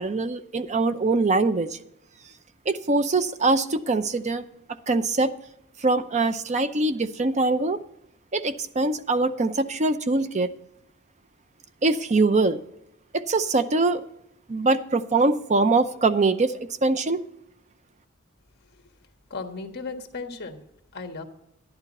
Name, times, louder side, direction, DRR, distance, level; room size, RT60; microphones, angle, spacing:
voice 1, 0.0-1.8 2.7-4.5 4.9-5.3 5.8-7.8 8.3-10.5 11.8-12.6 13.1-14.0 14.5-17.2, right 3 dB, 35° right, 12 dB, 0.6 m, -23 dB
voice 2, 19.3-20.6 20.9-21.2, left 4 dB, 50° left, 5 dB, 1.5 m, -35 dB
11.5 x 11.0 x 4.1 m, 0.79 s
head